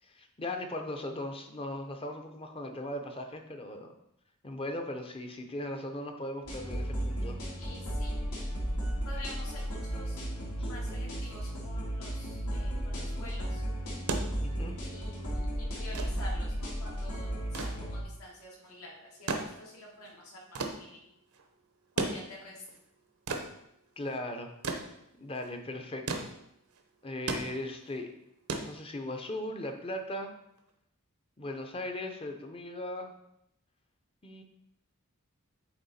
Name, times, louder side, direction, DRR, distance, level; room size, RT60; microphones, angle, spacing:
voice 1, 0.1-3.9 4.4-7.4 10.6-10.7 14.4-14.8 24.0-24.5 25.2-26.3 27.0-28.1 28.5-30.3 31.4-33.1 34.2-34.4, left 1 dB, 25° left, 4 dB, 0.7 m, -38 dB
sound 1, 6.4-18.0, equal, 90° left, 2.5 m, -34 dB
voice 2, 7.6-8.2 9.0-13.6 14.8-21.0 22.0-22.6, left 1 dB, 75° left, -3 dB, 2.0 m, -48 dB
sound 2, 13.8-29.4 30.6-30.7, right 3 dB, 75° right, 0.8 m, -38 dB
8.7 x 3.6 x 4.2 m, 0.80 s
head